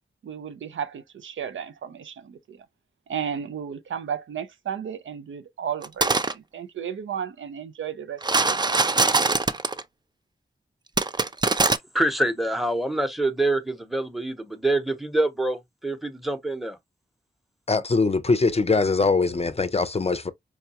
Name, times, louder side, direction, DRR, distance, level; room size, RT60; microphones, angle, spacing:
voice 1, 0.2-2.7 3.1-8.9, right 8 dB, 80° right, 0.5 m, -34 dB
sound 1, 5.8-6.3 8.2-9.8 11.0-11.8, right 3 dB, 20° right, 0.4 m, -22 dB
voice 2, 11.9-16.8, right 1 dB, ahead, 0.8 m, -25 dB
voice 3, 17.7-20.3, left 3 dB, 30° left, 0.5 m, -22 dB
4.6 x 2.2 x 2.8 m
cardioid pair, 45°, 20 cm